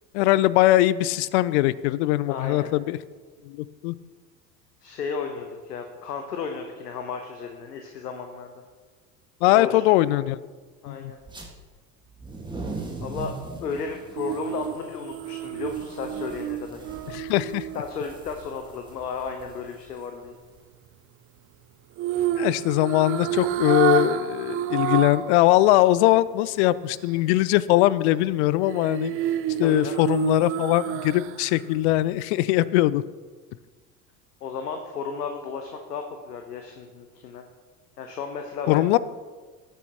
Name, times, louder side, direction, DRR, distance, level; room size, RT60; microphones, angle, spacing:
voice 1, 0.1-3.0 3.5-3.9 9.4-10.4 10.9-11.1 17.1-17.7 22.4-29.1 29.6-33.0 38.7-39.0, left 16 dB, 45° left, 19 dB, 0.5 m, -21 dB
voice 2, 2.3-2.7 4.8-8.5 9.5-9.8 10.8-11.2 13.0-13.3 13.6-16.8 17.7-20.4 29.6-30.0 34.4-37.4 38.0-38.9, left 5 dB, 75° left, 5 dB, 1.0 m, -34 dB
sound 1, 11.2-11.5 12.1-20.6, right 3 dB, 10° right, 1.6 m, -40 dB
sound 2, 14.2-18.4 22.0-25.4 25.7-25.8 28.7-31.5 31.9-32.0, right 12 dB, 30° right, 0.5 m, -29 dB
18.5 x 8.1 x 2.9 m, 1.4 s
figure-of-eight pair, 70°, 48 cm